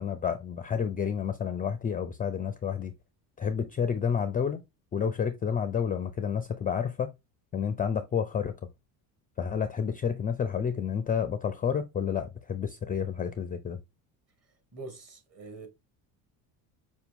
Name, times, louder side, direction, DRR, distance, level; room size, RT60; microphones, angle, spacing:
voice 1, 0.0-2.9 3.4-4.6 4.9-7.1 7.5-8.5 9.4-13.8, left 7 dB, 20° left, 0.4 m, -30 dB
voice 2, 14.7-15.7, right 3 dB, 35° right, 1.8 m, -44 dB
5.8 x 2.2 x 3.5 m
supercardioid pair, 80°, 45 cm